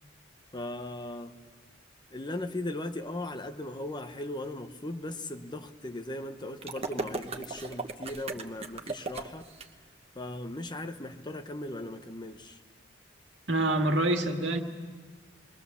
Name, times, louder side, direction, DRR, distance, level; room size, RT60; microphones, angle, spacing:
voice 1, 0.5-1.4 2.1-9.5 10.1-12.6, left 1 dB, 25° left, 8 dB, 0.9 m, -38 dB
sound 1, 6.6-9.7, right 3 dB, 30° right, 1.2 m, -37 dB
voice 2, 13.5-14.6, right 1 dB, 70° right, 4 dB, 1.9 m, -26 dB
27.0 x 22.0 x 7.0 m, 1.4 s
head